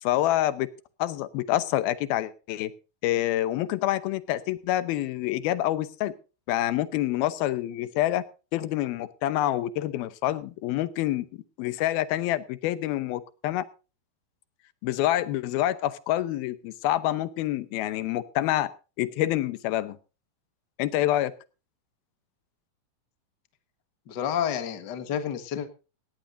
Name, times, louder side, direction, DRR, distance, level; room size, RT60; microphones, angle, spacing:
voice 1, 0.0-0.7 1.0-2.7 3.0-6.1 6.5-8.2 8.5-11.3 11.6-13.6 14.8-18.7 19.0-20.0 20.8-21.3, left 14 dB, 90° left, 15 dB, 2.8 m, -27 dB
voice 2, 24.1-25.7, left 9 dB, 45° left, 9 dB, 1.4 m, -30 dB
18.0 x 16.5 x 2.7 m, 0.32 s
omnidirectional pair, 4.2 m